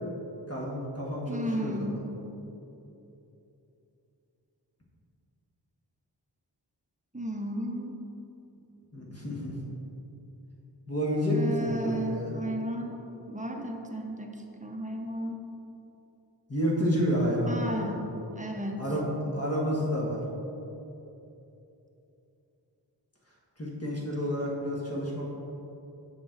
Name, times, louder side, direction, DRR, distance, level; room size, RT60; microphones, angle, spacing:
voice 1, 0.5-2.0 8.9-9.5 10.8-12.3 16.5-17.9 18.8-20.2 23.6-25.4, equal, 35° left, -4 dB, 1.7 m, -29 dB
voice 2, 1.3-2.0 7.1-7.9 11.3-13.0 13.3-14.3 14.6-15.5 17.5-18.9, equal, 15° right, 2 dB, 0.8 m, -34 dB
7.3 x 6.1 x 4.0 m, 2.9 s
wide cardioid pair, 45°, 43 cm